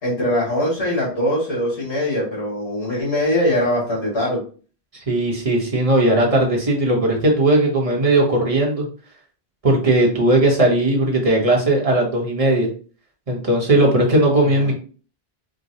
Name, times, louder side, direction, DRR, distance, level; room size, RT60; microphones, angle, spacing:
voice 1, 0.0-4.4 14.4-14.7, left 1 dB, 85° left, -5 dB, 2.2 m, -22 dB
voice 2, 5.1-8.9 9.6-12.7 13.3-14.7, right 1 dB, 35° right, -1 dB, 1.1 m, -17 dB
4.8 x 2.3 x 2.7 m, 0.39 s
omnidirectional pair, 1.0 m